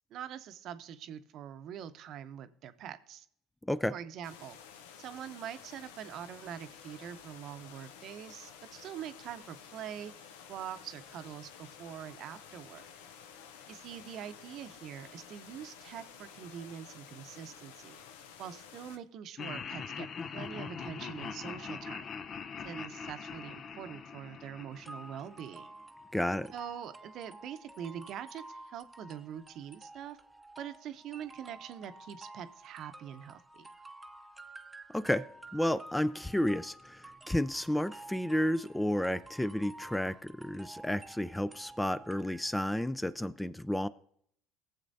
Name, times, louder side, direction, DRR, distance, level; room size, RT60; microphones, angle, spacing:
voice 1, 0.1-3.2 3.9-4.6 5.0-12.8 13.7-18.0 18.4-20.1 20.3-22.2 22.6-25.7 26.5-30.2 30.6-33.7, right 9 dB, 60° right, 11 dB, 0.7 m, -44 dB
sound 1, 4.2-19.0, left 7 dB, 80° left, 0.7 m, -52 dB
Laughter, 19.4-25.6, left 6 dB, 45° left, 0.6 m, -42 dB
sound 2, 24.8-42.8, right 2 dB, 10° right, 0.8 m, -51 dB
voice 2, 26.1-26.5 34.9-43.9, left 1 dB, 5° left, 16 dB, 0.4 m, -32 dB
18.0 x 7.4 x 2.7 m, 0.67 s
hypercardioid pair, 70°, 0 cm